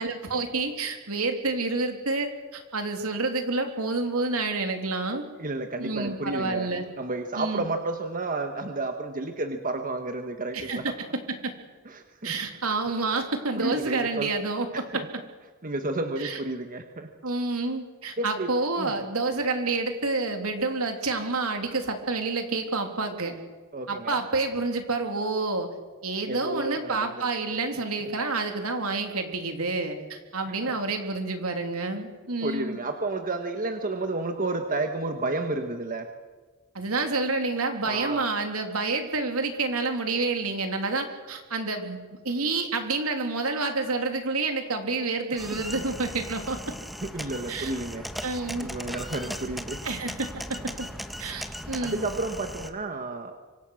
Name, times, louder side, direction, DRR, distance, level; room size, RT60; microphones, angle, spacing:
voice 1, 0.0-5.2 5.8-6.8 7.3-7.6 10.5-10.9 11.4-11.5 12.2-14.8 16.2-16.4 17.2-23.3 23.9-25.7 26.0-32.8 36.7-42.0 42.2-46.6 47.5-47.7 48.2-48.7 49.8-50.3 50.8-50.9 51.2-52.0, right 3 dB, 75° right, 5 dB, 3.3 m, -28 dB
voice 2, 5.4-6.7 7.0-10.9 11.8-12.3 13.5-14.3 14.7-15.1 15.6-17.1 18.2-18.5 18.8-18.9 23.7-24.2 26.3-27.8 30.5-30.7 32.4-36.1 37.9-38.3 45.5-45.8 47.0-48.0 48.6-49.8 50.7-50.8 51.8-53.4, right 2 dB, 40° right, 6 dB, 1.5 m, -31 dB
sound 1, 45.4-52.7, equal, ahead, 1.4 m, -38 dB
25.5 x 25.0 x 6.5 m, 1.3 s
head